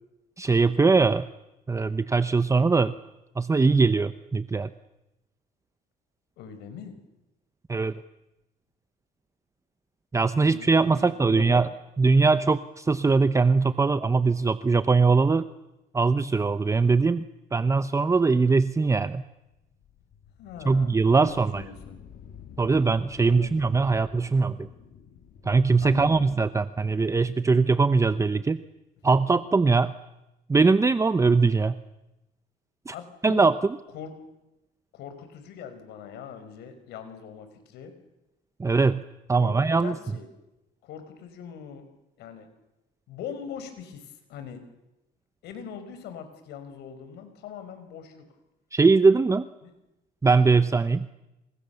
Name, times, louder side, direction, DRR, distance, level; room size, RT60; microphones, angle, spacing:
voice 1, 0.4-1.3 1.7-2.9 3.4-4.7 7.7-8.0 10.1-11.7 12.0-15.4 15.9-17.3 17.5-19.2 20.6-21.6 22.6-24.7 25.4-28.6 29.0-29.9 30.5-31.8 32.9-33.0 33.2-33.6 38.6-39.0 39.3-40.0 48.7-49.5 50.2-51.1, right 4 dB, 20° right, 12 dB, 0.8 m, -21 dB
voice 2, 6.4-6.9 10.4-11.7 20.4-22.0 23.2-23.6 25.8-26.3 29.7-29.8 32.9-33.5 33.9-34.1 34.9-37.9 39.3-40.3 40.8-41.8 42.2-42.5 43.1-44.6 45.4-48.2 49.6-49.7, left 7 dB, 80° left, 9 dB, 5.1 m, -41 dB
sound 1, 19.5-26.4, left 7 dB, 65° left, 3.4 m, -48 dB
28.0 x 26.0 x 7.1 m, 0.93 s
cardioid pair, 110°, 17 cm